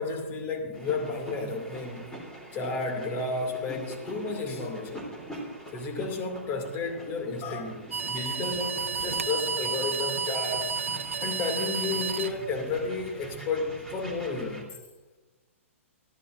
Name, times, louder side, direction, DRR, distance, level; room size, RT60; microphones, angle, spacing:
voice 1, 0.0-2.1 2.5-5.1 5.7-10.8 11.2-14.8, left 3 dB, 30° left, 2.4 m, -32 dB
sound 1, 0.7-14.6, right 1 dB, 5° left, 3.3 m, -44 dB
sound 2, 7.9-12.9, right 5 dB, 70° right, 0.7 m, -31 dB
24.0 x 14.0 x 2.6 m
figure-of-eight pair, 115°, 7 cm